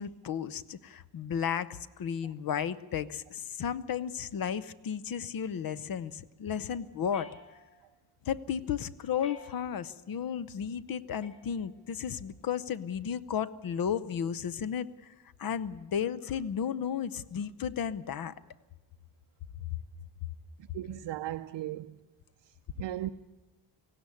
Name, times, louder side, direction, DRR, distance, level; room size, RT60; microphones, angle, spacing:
voice 1, 0.0-7.3 8.3-15.1 15.4-18.3, left 8 dB, 45° left, 0.7 m, -34 dB
sound 1, 7.1-8.0 9.2-10.0 11.2-12.0, left 4 dB, 25° left, 3.3 m, -53 dB
voice 2, 20.7-22.0 22.8-23.1, right 14 dB, 65° right, 0.6 m, -36 dB
18.0 x 16.0 x 9.7 m
wide cardioid pair, 175°, 48 cm